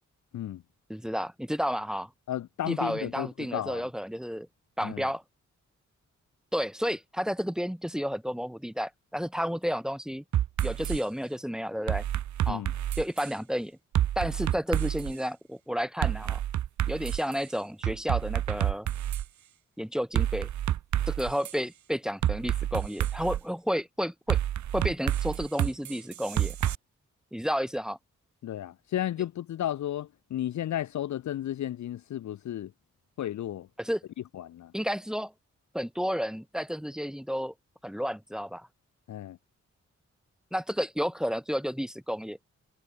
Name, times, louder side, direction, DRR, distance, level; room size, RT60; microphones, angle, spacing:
voice 1, 0.9-2.1 2.6-4.5 4.8-5.2 6.5-10.2 10.6-12.0 12.5-12.6 13.0-13.8 14.1-16.4 16.9-18.9 19.8-20.5 21.1-24.4 24.7-26.5 27.3-28.0 33.8-34.0 34.7-35.3 35.7-37.5 37.8-38.7 40.5-42.4, equal, ahead, 1.6 m, -31 dB
voice 2, 2.3-3.8 4.8-5.1 12.5-12.7 28.4-32.7 33.2-33.7 34.3-34.7 39.1-39.4, left 12 dB, 70° left, 0.5 m, -33 dB
sound 1, 10.3-11.0 11.9-13.3 13.9-15.1 16.0-17.3 17.8-19.3 20.2-21.5 22.2-23.4 24.3-26.8, right 12 dB, 70° right, 0.5 m, -28 dB
cardioid pair, 45°, 30 cm